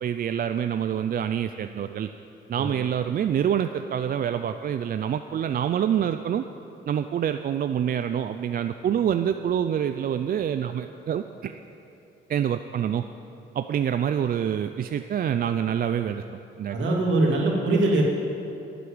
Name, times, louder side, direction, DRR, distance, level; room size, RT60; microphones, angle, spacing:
voice 1, 0.0-2.1 2.5-6.4 6.9-11.5 12.3-13.0 13.5-16.2 16.6-16.8, right 9 dB, 45° right, 9 dB, 0.4 m, -26 dB
voice 2, 16.7-18.0, right 2 dB, 70° right, -2 dB, 2.7 m, -22 dB
11.0 x 8.1 x 8.9 m, 2.9 s
cardioid pair, 90°, 20 cm